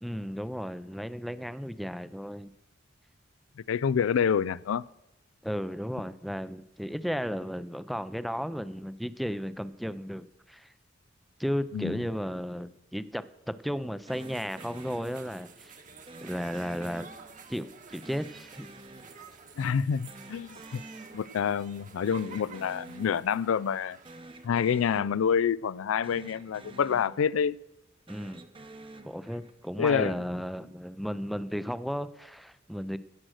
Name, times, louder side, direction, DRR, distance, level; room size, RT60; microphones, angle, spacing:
voice 1, 0.0-2.5 5.4-10.7 11.4-15.8 16.2-17.1 17.5-18.7 28.1-28.4 29.0-33.0, equal, ahead, 0.4 m, -34 dB
voice 2, 3.7-4.8 11.7-12.0 19.6-20.8 21.1-24.0 24.4-27.6 29.8-30.1, left 7 dB, 85° left, 0.4 m, -27 dB
sound 1, 14.1-15.6 16.1-17.6 18.0-19.8 20.1-21.6 21.9-23.6 24.0-25.8 26.0-27.6 28.0-29.7, right 2 dB, 25° right, 0.8 m, -49 dB
sound 2, 14.1-24.5, right 5 dB, 40° right, 1.2 m, -50 dB
16.0 x 7.6 x 6.4 m
head